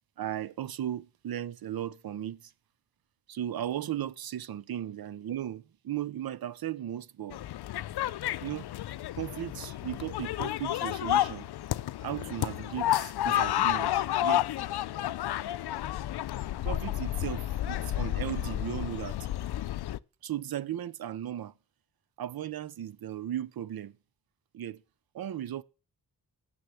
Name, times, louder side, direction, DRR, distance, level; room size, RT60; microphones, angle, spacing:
voice 1, 0.2-2.4 3.3-7.4 8.4-8.7 9.1-11.5 12.0-14.5 16.6-19.2 20.2-21.5 22.2-23.9 24.5-24.8 25.1-25.6, right 11 dB, 70° right, 0.7 m, -36 dB
sound 1, 7.3-20.0, left 13 dB, 85° left, 0.5 m, -31 dB
10.0 x 7.0 x 7.7 m
wide cardioid pair, 135°, 38 cm